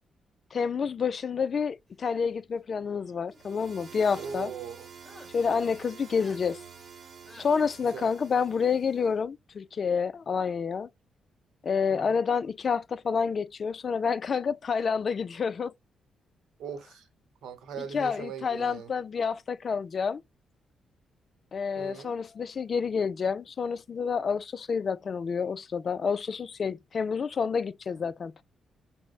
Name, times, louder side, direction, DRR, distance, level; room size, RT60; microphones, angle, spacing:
voice 1, 0.5-4.5 5.3-6.6 7.3-10.9 11.6-15.7 17.9-20.2 21.5-28.4, left 6 dB, 45° left, 0.3 m, -29 dB
sound 1, 2.6-3.4 4.0-4.5 5.0-5.3 6.1-6.4 7.2-7.5, left 1 dB, 5° left, 2.9 m, -53 dB
sound 2, 3.3-9.1, right 6 dB, 55° right, 0.9 m, -48 dB
voice 2, 4.1-4.9 7.8-8.1 11.9-12.2 16.6-17.1 17.4-18.9 21.8-22.1, right 6 dB, 85° right, 0.8 m, -40 dB
6.0 x 2.1 x 2.4 m
cardioid pair, 95°, 0 cm